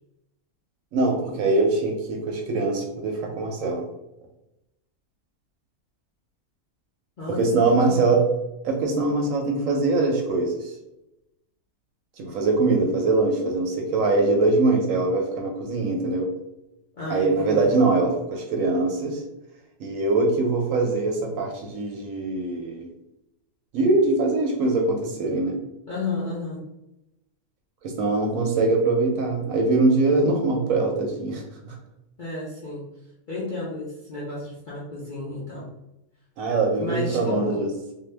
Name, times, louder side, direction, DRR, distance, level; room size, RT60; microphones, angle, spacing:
voice 1, 0.9-3.9 7.4-8.3 8.6-10.7 12.2-16.3 17.1-19.2 19.8-22.9 23.7-25.6 27.8-31.7 36.4-37.7, right 3 dB, 70° right, 1 dB, 0.9 m, -22 dB
voice 2, 7.2-8.1 16.9-17.7 25.9-26.6 32.2-32.9 33.3-35.7 36.8-37.7, left 3 dB, 55° left, -7 dB, 0.5 m, -32 dB
2.7 x 2.2 x 3.2 m, 0.89 s
omnidirectional pair, 1.6 m